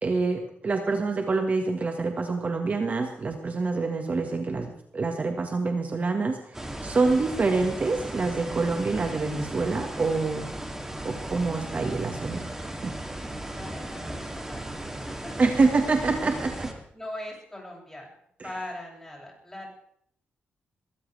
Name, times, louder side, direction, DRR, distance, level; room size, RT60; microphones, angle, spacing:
voice 1, 0.0-10.5 11.0-13.0 15.4-16.7, right 3 dB, 40° right, 4 dB, 1.7 m, -26 dB
sound 1, 6.5-16.7, right 1 dB, 10° right, 2.8 m, -36 dB
voice 2, 13.5-14.7 14.9-15.3 16.9-18.1 18.4-19.7, left 1 dB, 10° left, -2 dB, 7.4 m, -40 dB
23.0 x 14.0 x 3.4 m, 0.67 s
cardioid pair, 90°, 4 cm